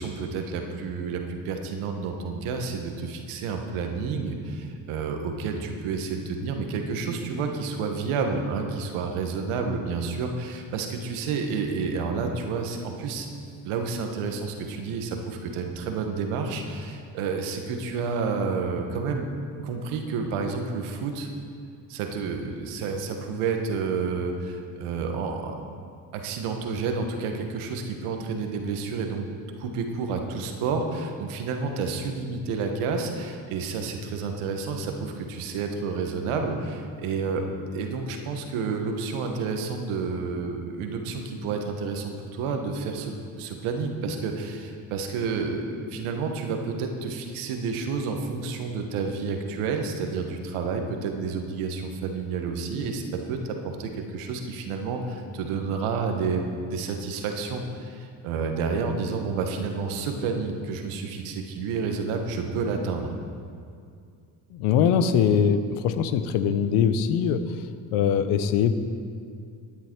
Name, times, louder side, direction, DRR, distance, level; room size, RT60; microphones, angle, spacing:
voice 1, 0.0-13.3 13.6-19.3 19.6-21.3 21.9-25.6 26.1-29.2 29.6-37.5 37.7-63.1, right 4 dB, 75° right, 4 dB, 1.4 m, -30 dB
voice 2, 64.5-67.4 67.9-68.8, left 7 dB, 80° left, 10 dB, 0.9 m, -22 dB
13.0 x 9.5 x 4.6 m, 2.3 s
hypercardioid pair, 60°, 50 cm